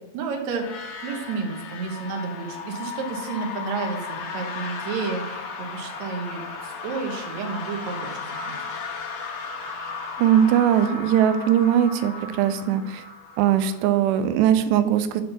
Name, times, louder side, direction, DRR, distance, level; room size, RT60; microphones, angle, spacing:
voice 1, 0.1-4.1 4.3-8.5, right 4 dB, 70° right, 2 dB, 1.7 m, -31 dB
sound 1, 0.5-14.3, left 4 dB, 90° left, 3.5 m, -35 dB
voice 2, 10.2-13.0 13.4-15.2, right 10 dB, 90° right, 10 dB, 2.7 m, -20 dB
7.4 x 4.4 x 6.5 m, 0.99 s
omnidirectional pair, 4.7 m